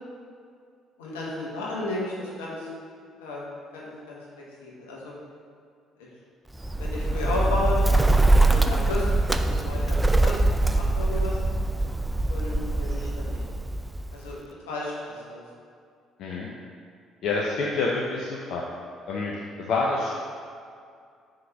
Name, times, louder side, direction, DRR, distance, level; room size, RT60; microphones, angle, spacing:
voice 1, 1.0-2.7 3.2-3.4 3.7-5.1 6.0-6.1 6.8-7.8 8.5-9.1 9.4-11.4 12.3-13.4 14.1-14.3 14.7-14.9 15.3-15.4, left 2 dB, 85° left, -5 dB, 1.3 m, -33 dB
Bird, 6.6-14.3, right 2 dB, 10° right, 0.4 m, -23 dB
voice 2, 17.2-18.6 19.1-19.3 19.6-20.1, left 3 dB, 65° left, -3 dB, 0.7 m, -27 dB
5.0 x 3.9 x 5.8 m, 2.3 s
hypercardioid pair, 55°, 0 cm